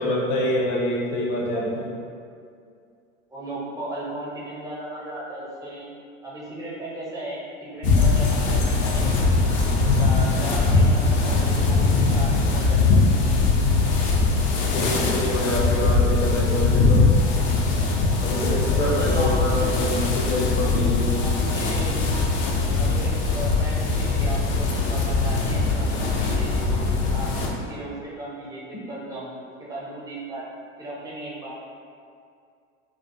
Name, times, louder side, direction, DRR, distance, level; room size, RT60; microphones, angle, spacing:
voice 1, 0.0-1.9 14.7-17.0 18.2-21.2, left 1 dB, 70° left, -2 dB, 0.7 m, -26 dB
voice 2, 3.3-5.9 6.2-9.3 9.8-13.0 18.8-19.7 20.6-20.9 21.2-22.0 22.8-29.3 29.6-30.4 30.8-31.6, right 1 dB, 10° right, -6 dB, 0.5 m, -36 dB
sound 1, 7.8-27.5, left 3 dB, 40° left, 0.4 m, -21 dB
2.3 x 2.2 x 2.5 m, 2.3 s
hypercardioid pair, 95°, 37 cm